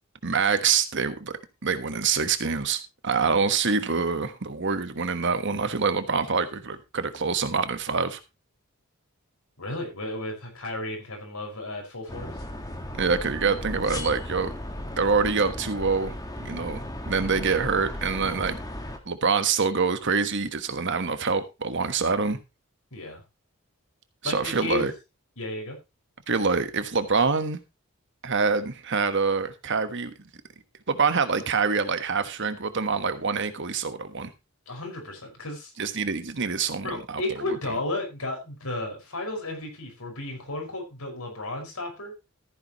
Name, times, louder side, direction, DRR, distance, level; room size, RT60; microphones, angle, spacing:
voice 1, 0.2-8.2 12.9-14.5 15.0-16.1 16.4-18.6 19.1-22.4 24.2-24.9 26.3-27.6 28.2-30.1 30.9-34.3 35.8-37.2, right 5 dB, 55° right, 1.3 m, -25 dB
voice 2, 9.6-12.4 17.2-17.5 22.9-23.2 24.2-24.9 25.4-25.8 34.7-35.7 36.8-42.1, left 2 dB, 85° left, 5.6 m, -33 dB
sound 1, 12.1-19.0, left 1 dB, 15° left, 1.7 m, -36 dB
14.0 x 9.9 x 3.1 m
head